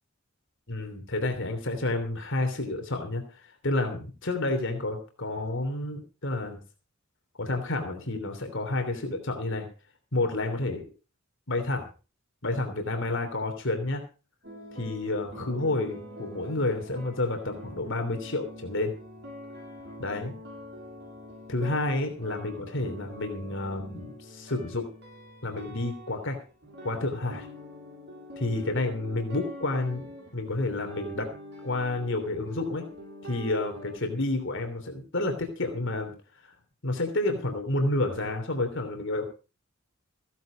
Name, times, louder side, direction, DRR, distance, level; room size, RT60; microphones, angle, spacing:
voice 1, 0.7-6.6 7.4-9.7 10.1-10.8 11.5-11.9 12.4-14.0 14.7-18.9 20.0-20.3 21.5-24.9 25.4-26.4 26.8-27.5 28.4-31.3 31.6-32.9 33.2-36.1 36.4-36.5 36.8-39.2, left 2 dB, 60° left, 5 dB, 3.1 m, -30 dB
sound 1, 14.4-34.0, equal, 55° right, 6.9 m, -45 dB
16.0 x 10.5 x 5.1 m, 0.34 s
head